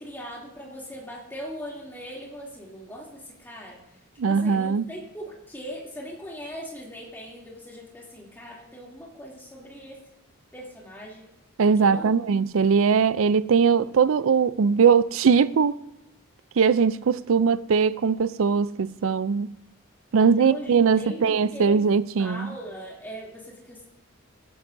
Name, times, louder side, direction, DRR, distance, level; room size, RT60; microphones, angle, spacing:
voice 1, 0.0-3.8 4.2-10.0 10.5-11.2 11.8-12.1 20.2-21.8 22.2-23.9, equal, 10° left, 2.8 m, -40 dB
voice 2, 4.2-4.8 11.6-15.8 16.6-19.5 20.1-22.5, right 6 dB, 70° right, 0.4 m, -20 dB
21.5 x 11.5 x 2.6 m
head